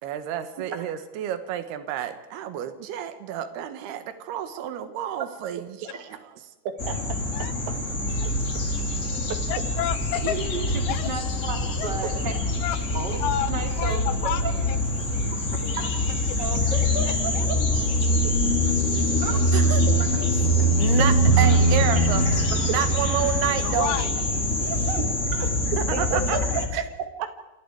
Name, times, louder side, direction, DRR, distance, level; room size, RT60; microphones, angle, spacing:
voice 1, 0.0-6.2 19.5-19.8 20.8-22.2 22.6-24.0 25.8-26.4 26.7-26.8, right 10 dB, 70° right, 10 dB, 3.3 m, -29 dB
voice 2, 6.7-7.8 8.3-8.4 9.3-9.4 12.0-12.1 18.2-18.4 22.7-22.8 25.0-25.1 25.9-26.4 27.0-27.3, right 7 dB, 90° right, 8 dB, 4.1 m, -32 dB
sound 1, 6.8-26.7, equal, 20° left, 2.9 m, -24 dB
sound 2, 8.1-25.0, left 5 dB, 65° left, 4.6 m, -41 dB
voice 3, 9.5-10.3 10.9-11.1 11.8-11.9 12.6-12.8 13.2-13.5 13.8-14.4 17.3-17.5 23.6-24.1 26.1-26.4, left 12 dB, 80° left, 12 dB, 3.2 m, -29 dB
voice 4, 10.2-12.3 12.9-14.0 14.4-14.5 15.7-15.9 16.4-17.6 19.2-19.4 20.0-20.1 21.0-21.1 21.4-21.6 21.9-22.7 24.6-25.0 25.3-25.5 26.3-26.6, right 4 dB, 30° right, 4 dB, 2.6 m, -34 dB
28.5 x 27.0 x 4.8 m, 1.0 s
omnidirectional pair, 5.0 m